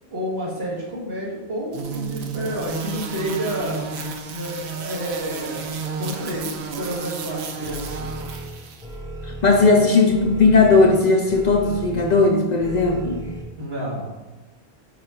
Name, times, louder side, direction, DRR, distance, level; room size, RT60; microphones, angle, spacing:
voice 1, 0.1-3.8 4.3-5.7 6.0-8.1 9.7-9.9 13.6-14.1, equal, 70° right, -6 dB, 2.1 m, -30 dB
sound 1, 1.7-8.9, right 5 dB, 85° right, 0.9 m, -32 dB
sound 2, 7.6-13.4, right 1 dB, 5° right, 0.7 m, -36 dB
voice 2, 9.2-13.2, left 3 dB, 50° left, 2 dB, 0.6 m, -17 dB
5.6 x 5.0 x 3.6 m, 1.2 s
omnidirectional pair, 1.1 m